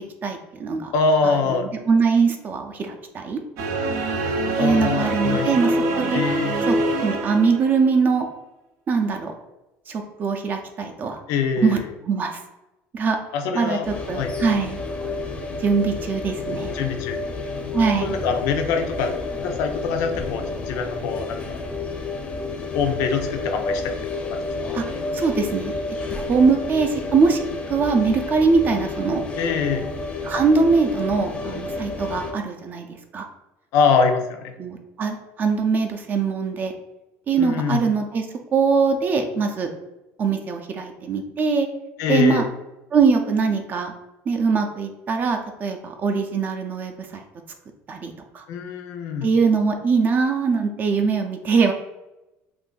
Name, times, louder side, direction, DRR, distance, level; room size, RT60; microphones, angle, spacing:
voice 1, 0.2-0.9 1.2-3.4 4.6-6.2 6.7-6.8 7.0-8.3 8.9-9.3 9.9-11.2 11.6-11.8 12.1-12.4 12.9-13.2 13.5-14.8 15.6-16.7 17.7-18.1 24.7-24.8 25.1-25.7 26.1-27.4 27.7-29.2 30.2-33.3 34.6-36.7 37.3-38.3 38.5-39.7 40.2-41.7 42.1-42.4 42.9-43.9 44.3-47.2 47.9-48.4 49.2-51.7, right 5 dB, 35° right, 4 dB, 0.4 m, -22 dB
voice 2, 0.9-1.7 4.6-5.8 6.1-6.5 11.3-11.9 13.3-13.9 14.1-14.3 16.7-17.2 18.0-19.2 19.4-21.4 22.7-24.0 24.3-24.4 29.4-29.9 33.7-34.5 37.4-37.8 42.0-42.5 48.5-49.3, left 5 dB, 80° left, 5 dB, 0.5 m, -24 dB
sound 1, 3.6-8.0, right 2 dB, 80° right, 0.6 m, -24 dB
sound 2, 13.8-32.3, left 3 dB, 20° left, 0.6 m, -30 dB
2.5 x 2.5 x 3.8 m, 0.97 s
cardioid pair, 130°, 5 cm